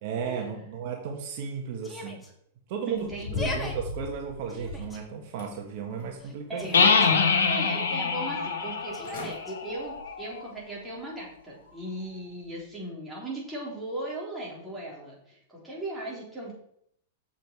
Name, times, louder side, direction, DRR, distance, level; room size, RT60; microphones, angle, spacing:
voice 1, 0.0-2.2 2.7-6.7, right 6 dB, 55° right, 2 dB, 1.4 m, -34 dB
Yell, 1.8-2.3 3.2-3.7 4.5-5.0 6.2-7.1 8.9-9.5, left 2 dB, 10° left, 1.6 m, -38 dB
sound 1, 2.9-5.0 5.4-6.2 6.6-7.5 7.9-8.0 8.7-8.8 9.0-9.4 9.8-10.1 10.6-10.7, left 3 dB, 65° left, 4.1 m, -38 dB
voice 2, 2.9-3.6 6.5-6.9 7.5-16.5, right 1 dB, 5° right, -5 dB, 3.8 m, -37 dB
sound 2, 6.7-10.4, left 5 dB, 90° left, 1.7 m, -25 dB
7.4 x 7.3 x 4.7 m, 0.70 s
hypercardioid pair, 135°, 0 cm